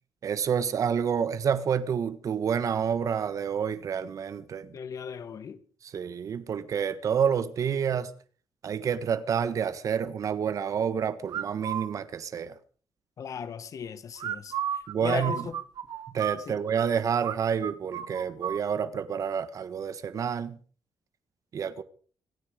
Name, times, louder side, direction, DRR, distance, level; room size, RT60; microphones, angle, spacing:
voice 1, 0.2-4.7 5.9-8.1 8.6-12.6 14.9-15.5 16.1-20.6 21.5-21.8, right 7 dB, 50° right, 1.5 m, -28 dB
voice 2, 4.7-5.6 13.2-15.6 16.4-16.6, left 7 dB, 50° left, 1.8 m, -37 dB
sound 1, 11.3-11.9 14.2-16.9 17.2-17.4 17.6-18.6, right 9 dB, 70° right, 1.9 m, -33 dB
26.5 x 9.7 x 5.1 m
cardioid pair, 140°, 7 cm